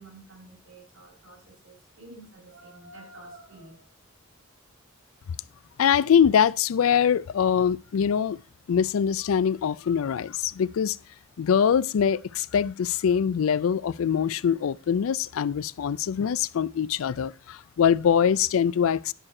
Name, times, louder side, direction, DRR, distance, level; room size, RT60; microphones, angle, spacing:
voice 1, 0.0-3.9, right 2 dB, 85° right, 5.2 m, -49 dB
voice 2, 5.8-8.4 8.7-11.0 11.4-19.1, left 7 dB, 85° left, 0.4 m, -23 dB
11.0 x 6.5 x 4.3 m
head